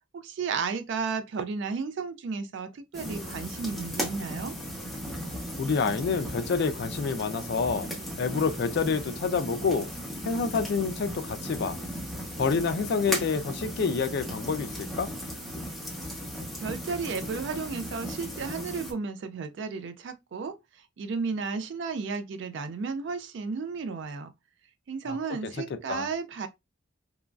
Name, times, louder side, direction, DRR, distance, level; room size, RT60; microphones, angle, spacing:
voice 1, 0.1-4.5 16.6-24.3 24.9-26.5, right 5 dB, 55° right, 0.3 m, -33 dB
sound 1, 2.9-18.9, equal, ahead, 0.7 m, -36 dB
voice 2, 5.6-7.9 8.2-9.9 10.2-11.8 12.4-15.1 25.1-25.2 25.4-25.5 25.9-26.1, left 5 dB, 50° left, 0.3 m, -28 dB
3.0 x 2.5 x 2.2 m
head